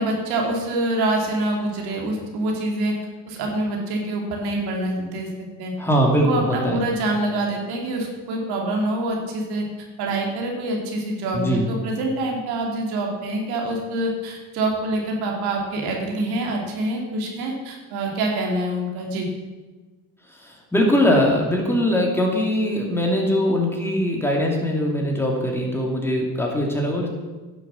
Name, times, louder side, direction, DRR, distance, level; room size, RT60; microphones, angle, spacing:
voice 1, 0.0-2.9 3.3-5.3 5.6-5.7 6.2-9.6 10.0-19.3, right 1 dB, 85° right, 0 dB, 2.8 m, -25 dB
voice 2, 5.8-6.8 11.3-11.6 20.4-27.1, equal, 5° left, -1 dB, 2.7 m, -21 dB
11.0 x 7.2 x 7.1 m, 1.3 s
cardioid pair, 105°, 37 cm